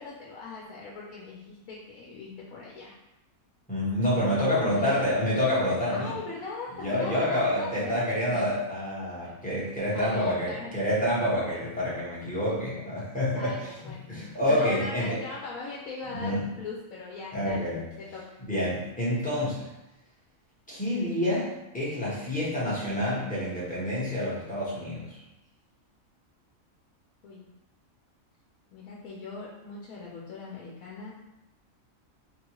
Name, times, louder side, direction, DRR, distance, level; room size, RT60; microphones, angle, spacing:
voice 1, 0.0-3.0 4.1-5.1 5.9-8.6 9.2-9.3 9.9-10.7 13.3-18.4 27.2-27.5 28.7-31.2, left 4 dB, 85° left, -4 dB, 1.0 m, -40 dB
voice 2, 3.7-6.1 6.8-13.5 14.1-15.2 16.2-16.5 17.3-17.8 18.5-19.7 20.7-25.2, left 1 dB, 5° left, -8 dB, 0.8 m, -28 dB
3.5 x 2.3 x 2.9 m, 0.93 s
omnidirectional pair, 1.4 m